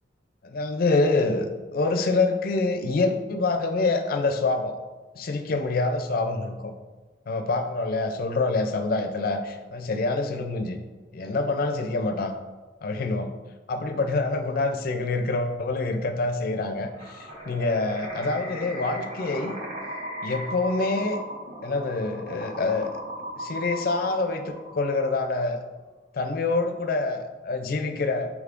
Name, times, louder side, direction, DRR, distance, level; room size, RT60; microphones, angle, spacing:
voice 1, 0.4-1.5 1.7-4.7 5.1-6.7 7.3-10.8 11.1-12.3 12.8-13.3 13.7-19.6 20.2-21.2 21.6-22.9 23.4-25.6 26.1-28.3, left 3 dB, 50° left, 6 dB, 0.4 m, -26 dB
sound 1, 16.9-25.4, equal, 40° right, 1.3 m, -37 dB
4.9 x 3.4 x 2.5 m, 1.3 s
head